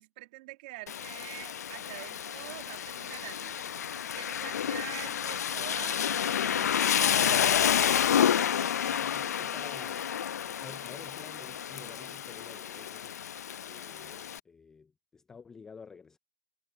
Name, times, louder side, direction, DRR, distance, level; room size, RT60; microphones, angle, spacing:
voice 1, 0.0-3.6 3.9-7.7 14.0-14.2, right 20 dB, 35° right, 2.1 m, -46 dB
Rain, 0.9-14.4, left 9 dB, 70° left, 0.5 m, -30 dB
Engine, 2.5-12.5, left 28 dB, 25° left, 5.6 m, -61 dB
voice 2, 8.8-10.1 10.4-16.2, left 5 dB, 5° left, 0.4 m, -51 dB
hypercardioid pair, 165°, 9 cm